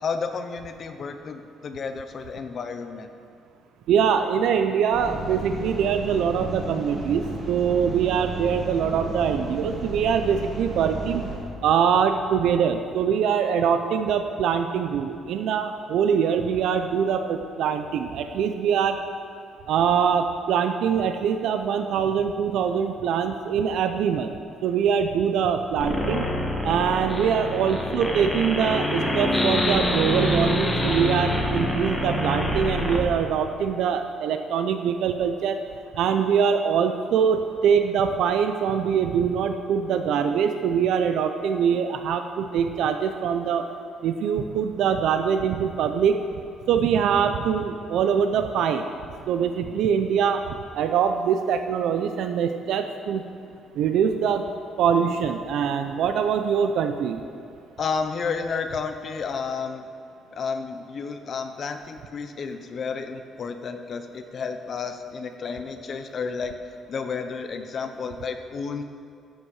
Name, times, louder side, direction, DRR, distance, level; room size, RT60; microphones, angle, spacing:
voice 1, 0.0-3.1 57.8-59.9 60.3-66.5 66.9-68.8, left 5 dB, 35° left, 8 dB, 0.5 m, -31 dB
voice 2, 3.9-11.2 11.6-19.0 19.7-24.3 24.6-26.3 26.6-35.6 35.9-43.6 44.0-46.2 46.7-48.9 49.3-50.4 50.7-53.2 53.7-54.4 54.8-57.2, right 7 dB, 65° right, 7 dB, 0.5 m, -23 dB
sound 1, 4.9-11.4, right 2 dB, 40° right, 1.9 m, -33 dB
sound 2, 25.8-33.0, left 1 dB, ahead, 1.2 m, -25 dB
12.5 x 8.4 x 4.8 m, 2.5 s
cardioid pair, 170°, 0 cm